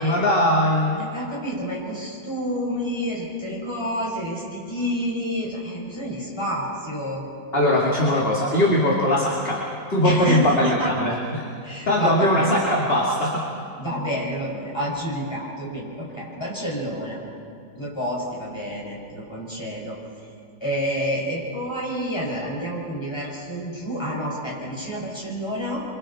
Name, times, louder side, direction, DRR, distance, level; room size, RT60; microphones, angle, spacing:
voice 1, 0.0-1.1 7.5-9.6 9.9-11.4 11.9-13.4, left 1 dB, 35° left, -4 dB, 2.6 m, -20 dB
voice 2, 1.0-7.2 8.1-8.2 10.0-10.9 11.6-12.5 13.8-17.2 17.8-20.3 20.6-25.8, equal, 15° left, -4 dB, 6.3 m, -29 dB
29.5 x 24.5 x 4.4 m, 2.4 s
omnidirectional pair, 1.8 m